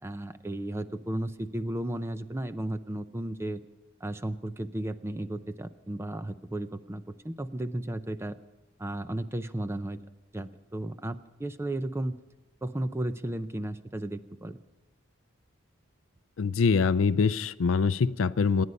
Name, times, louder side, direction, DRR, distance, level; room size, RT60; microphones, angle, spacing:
voice 1, 0.0-3.6 4.0-8.4 8.8-10.0 10.3-12.2 12.6-14.6, right 1 dB, 15° right, 11 dB, 0.5 m, -34 dB
voice 2, 16.4-18.7, left 5 dB, 70° left, 16 dB, 0.5 m, -24 dB
27.0 x 9.7 x 5.3 m, 1.1 s
head